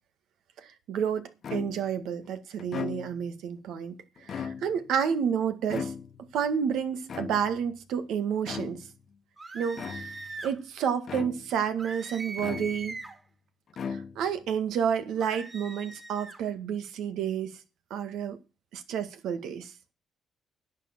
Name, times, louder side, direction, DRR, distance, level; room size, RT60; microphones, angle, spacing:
voice 1, 0.6-5.9 6.3-8.9 9.5-13.0 13.9-17.5 17.9-18.4 18.7-19.7, right 7 dB, 85° right, 1.7 m, -30 dB
sound 1, 1.4-2.0 2.6-3.3 4.2-4.9 5.7-6.4 7.1-7.7 8.4-9.0 9.7-10.3 11.1-11.7 12.4-13.1 13.7-14.4, left 6 dB, 55° left, 1.1 m, -38 dB
sound 2, 9.4-10.6 11.8-13.2 15.2-16.4, right 3 dB, 30° right, 3.7 m, -41 dB
11.0 x 8.5 x 7.2 m
cardioid pair, 90°, 0 cm